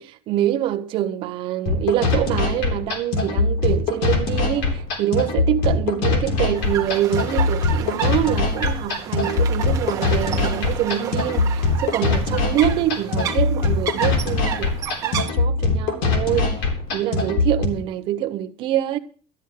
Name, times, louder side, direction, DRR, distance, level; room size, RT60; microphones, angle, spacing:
voice 1, 0.0-16.6 16.9-19.0, right 12 dB, 40° right, 0.9 m, -25 dB
sound 1, 1.7-17.7, left 4 dB, 65° left, 3.6 m, -22 dB
sound 2, 6.5-15.3, right 9 dB, 25° right, 1.2 m, -31 dB
12.5 x 10.0 x 6.6 m
cardioid pair, 180°, 13 cm